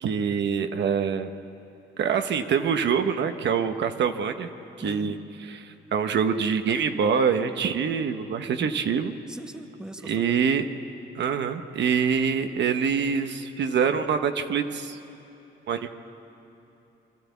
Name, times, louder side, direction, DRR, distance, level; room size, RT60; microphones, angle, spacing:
voice 1, 0.0-1.3 2.0-4.5 4.8-5.2 5.5-9.1 10.0-10.6 11.1-15.0 15.7-15.9, right 6 dB, 65° right, 7 dB, 1.0 m, -25 dB
voice 2, 4.8-5.1 8.4-8.7 9.3-10.5, equal, 5° right, 7 dB, 1.0 m, -40 dB
25.0 x 12.5 x 8.3 m, 3.0 s
cardioid pair, 90°, 20 cm